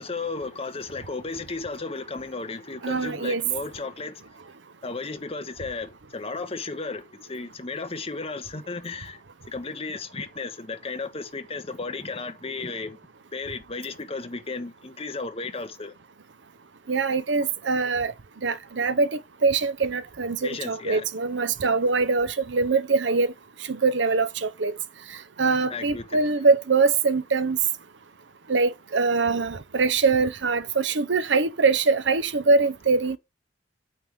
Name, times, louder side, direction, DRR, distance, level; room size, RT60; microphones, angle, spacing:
voice 1, 0.0-4.1 4.8-7.0 7.3-9.2 9.5-13.0 13.3-15.9 20.4-21.1 25.7-26.2, left 3 dB, 35° left, 1.1 m, -34 dB
voice 2, 2.8-3.4 16.9-18.1 18.4-23.3 23.7-24.7 25.4-27.6 28.5-33.2, right 4 dB, 85° right, 0.8 m, -23 dB
8.8 x 3.5 x 6.2 m
head